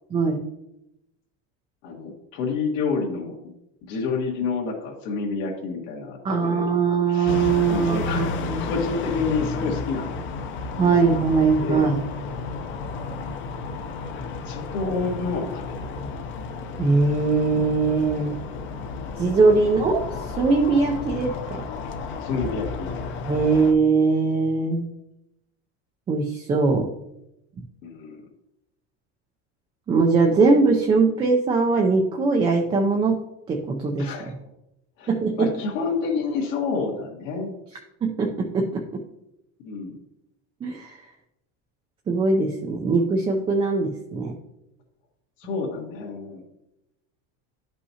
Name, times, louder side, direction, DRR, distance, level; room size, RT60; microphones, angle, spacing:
voice 1, 0.1-0.4 6.2-8.6 10.8-12.0 16.8-18.4 19.2-20.0 20.4-21.6 23.2-24.9 26.1-26.9 29.9-33.2 33.5-34.1 35.1-35.5 38.0-38.8 40.6-41.0 42.1-44.3, right 4 dB, 15° right, 1 dB, 0.4 m, -21 dB
voice 2, 1.8-3.4 3.8-10.1 10.7-11.2 11.6-11.9 14.2-16.3 19.6-19.9 22.2-23.0 27.8-28.2 34.0-34.3 35.0-37.6 39.6-40.0 45.4-46.4, left 4 dB, 75° left, -3 dB, 1.8 m, -29 dB
sound 1, 7.2-23.7, left 4 dB, 30° left, 0.7 m, -32 dB
11.0 x 5.6 x 2.8 m, 0.87 s
cardioid pair, 160°, 37 cm